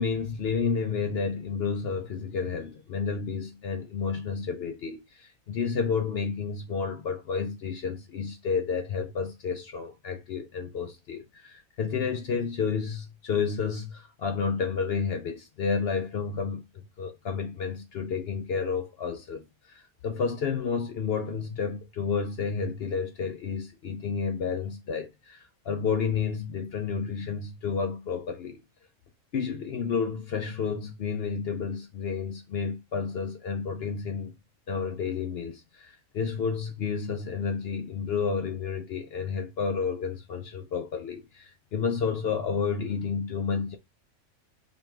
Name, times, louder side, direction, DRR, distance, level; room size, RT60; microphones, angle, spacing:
voice 1, 0.0-28.6 29.3-34.3 34.7-43.8, left 5 dB, 65° left, 0.6 m, -31 dB
5.1 x 3.0 x 2.3 m
omnidirectional pair, 1.5 m